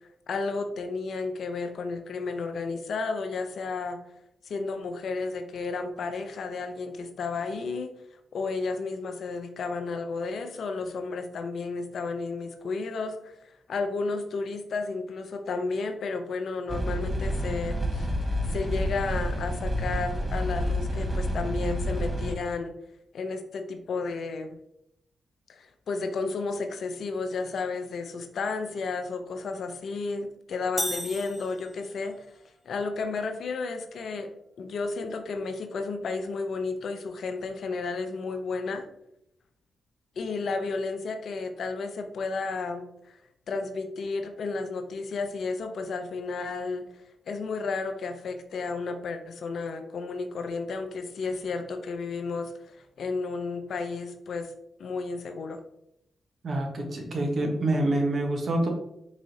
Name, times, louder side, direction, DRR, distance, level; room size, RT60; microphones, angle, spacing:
voice 1, 0.3-4.0 4.4-7.9 8.3-18.1 18.5-22.8 23.1-24.5 25.5-32.4 32.6-34.3 34.6-38.9 40.2-43.2 43.5-54.5 54.8-55.6, left 4 dB, 70° left, 6 dB, 0.5 m, -32 dB
sound 1, 16.7-22.3, equal, 25° right, 1.1 m, -29 dB
sound 2, 30.8-32.2, equal, 5° left, 0.3 m, -34 dB
voice 2, 56.4-58.7, right 1 dB, 60° right, 2 dB, 0.9 m, -26 dB
4.6 x 3.0 x 2.6 m, 0.78 s
supercardioid pair, 45°, 0 cm